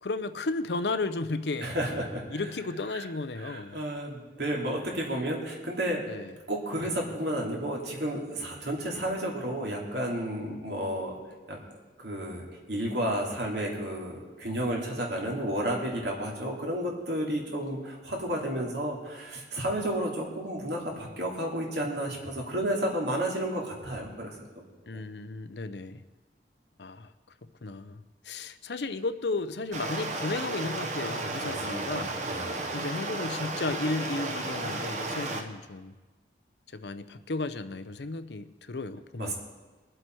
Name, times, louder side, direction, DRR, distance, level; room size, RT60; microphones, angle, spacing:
voice 1, 0.0-1.7 2.3-3.8 6.1-6.3 6.8-7.0 24.9-26.0 26.8-27.1 27.6-32.2 32.7-35.9 36.7-39.3, left 3 dB, 75° left, 12 dB, 0.7 m, -34 dB
voice 2, 1.6-2.4 2.9-3.1 3.4-6.1 6.5-11.2 11.5-11.6 12.0-24.7 24.9-25.0 31.4-32.7 39.2-39.3, right 1 dB, 80° right, -1 dB, 3.0 m, -32 dB
Stream, 29.7-35.4, right 2 dB, 40° right, 1.0 m, -33 dB
22.5 x 7.8 x 4.6 m, 1.2 s
head